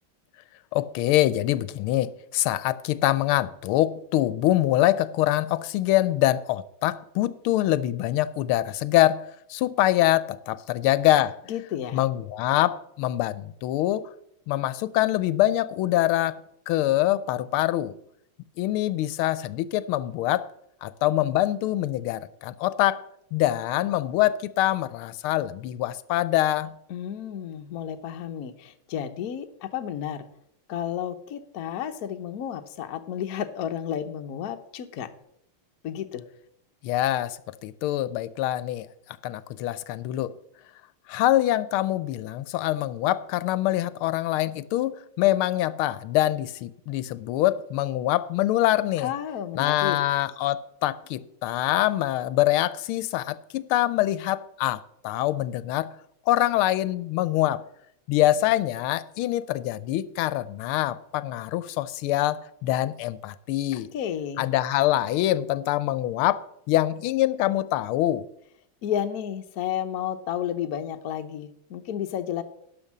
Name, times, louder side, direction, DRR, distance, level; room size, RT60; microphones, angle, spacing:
voice 1, 0.7-11.4 11.9-14.1 14.5-16.4 16.7-17.9 18.6-20.5 20.8-23.0 23.3-26.7 36.8-38.9 39.2-40.3 41.1-49.1 49.6-55.9 56.3-57.6 58.1-63.9 64.4-68.3, left 14 dB, 90° left, 1.5 m, -24 dB
voice 2, 11.5-12.0 26.9-30.3 30.7-35.1 35.8-36.2 49.0-50.0 63.7-64.5 68.8-72.4, left 9 dB, 60° left, 1.1 m, -32 dB
12.0 x 5.5 x 7.2 m
omnidirectional pair, 2.3 m